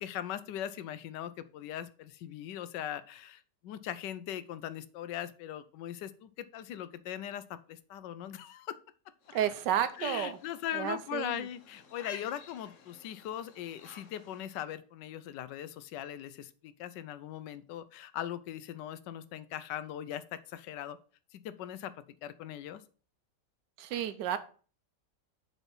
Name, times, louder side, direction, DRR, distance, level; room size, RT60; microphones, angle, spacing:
voice 1, 0.0-8.8 10.0-21.0 21.3-21.9 22.2-22.8, left 11 dB, 80° left, 14 dB, 1.3 m, -40 dB
sound 1, 9.2-14.5, left 7 dB, 50° left, 1.1 m, -52 dB
voice 2, 9.3-10.4 10.7-11.4 23.8-24.4, right 10 dB, 85° right, 11 dB, 1.4 m, -31 dB
6.9 x 4.2 x 5.5 m, 0.40 s
omnidirectional pair, 1.9 m